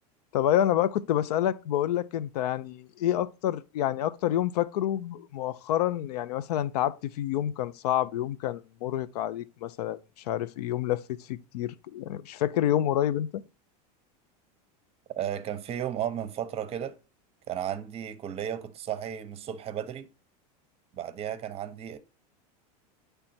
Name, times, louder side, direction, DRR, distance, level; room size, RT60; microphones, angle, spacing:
voice 1, 0.3-10.0 10.3-13.4, left 11 dB, 80° left, 0.5 m, -28 dB
voice 2, 15.2-17.0 17.5-20.1 20.9-22.0, right 10 dB, 30° right, 0.7 m, -34 dB
8.6 x 3.4 x 4.2 m
supercardioid pair, 130°, 20 cm